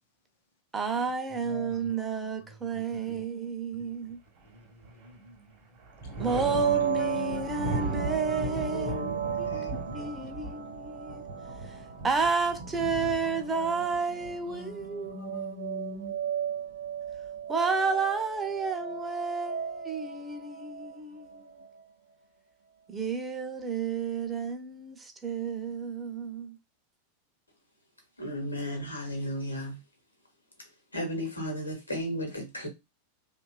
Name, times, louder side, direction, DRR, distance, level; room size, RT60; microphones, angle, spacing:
voice 1, 0.7-4.2 6.2-11.2 12.0-15.1 17.5-21.5 22.9-26.6, right 4 dB, 15° right, 0.5 m, -31 dB
voice 2, 1.5-1.9 2.4-3.2 4.4-5.5 6.1-7.2 7.5-10.0 12.9-13.7 14.5-16.2, left 3 dB, 60° left, 0.7 m, -44 dB
Thunder, 4.4-5.1 5.5-15.1 16.6-17.4, right 3 dB, 40° right, 0.9 m, -38 dB
sound 1, 6.3-21.9, right 8 dB, 65° right, 0.4 m, -36 dB
voice 3, 28.2-29.8 30.6-30.7 30.9-32.7, equal, 80° left, 0.9 m, -34 dB
2.8 x 2.3 x 2.2 m
figure-of-eight pair, 90°, 0 cm